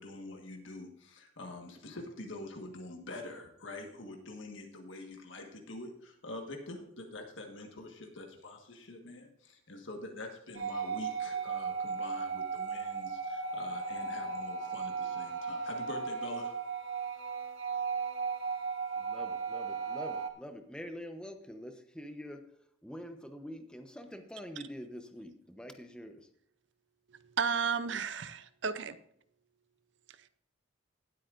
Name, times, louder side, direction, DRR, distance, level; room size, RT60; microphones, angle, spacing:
voice 1, 0.0-16.6, left 2 dB, 75° left, 2 dB, 1.5 m, -45 dB
sound 1, 10.6-20.3, right 5 dB, 85° right, 1.1 m, -36 dB
voice 2, 19.0-22.5 22.8-26.3, equal, 5° left, 6 dB, 0.9 m, -45 dB
voice 3, 27.4-29.0, right 6 dB, 65° right, 13 dB, 0.6 m, -32 dB
18.5 x 8.4 x 2.6 m, 0.72 s
head